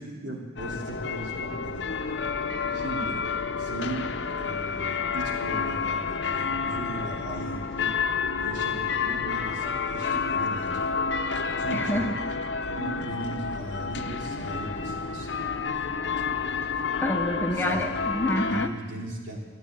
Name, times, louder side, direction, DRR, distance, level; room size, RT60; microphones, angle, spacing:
voice 1, 0.0-2.0 2.7-3.2 3.5-4.1 4.4-7.9 8.4-10.9 11.6-12.1 12.7-15.3 17.5-17.8 18.4-19.4, right 1 dB, 70° right, -2 dB, 3.3 m, -38 dB
sound 1, 0.6-18.7, left 5 dB, 65° left, 0.7 m, -30 dB
voice 2, 11.7-12.1 17.0-18.7, left 1 dB, 10° left, 4 dB, 0.8 m, -27 dB
14.0 x 9.5 x 8.7 m, 1.4 s
head